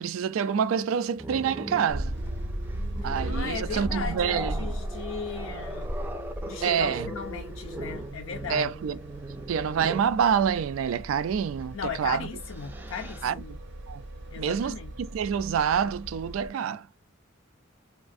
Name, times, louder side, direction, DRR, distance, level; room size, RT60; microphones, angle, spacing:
voice 1, 0.0-2.1 3.0-4.7 6.6-7.1 8.5-9.0 9.5-12.3 13.2-13.3 13.9-14.0 14.4-16.8, right 7 dB, 85° right, 0.3 m, -27 dB
Growling, 1.2-10.2 11.5-11.7 12.2-13.3, right 1 dB, 10° right, 0.4 m, -39 dB
sound 1, 1.9-16.5, right 1 dB, 65° right, 0.7 m, -37 dB
voice 2, 3.3-5.9 6.5-8.7 11.7-13.6 14.3-14.9, left 6 dB, 85° left, 0.4 m, -37 dB
3.4 x 2.4 x 2.5 m
head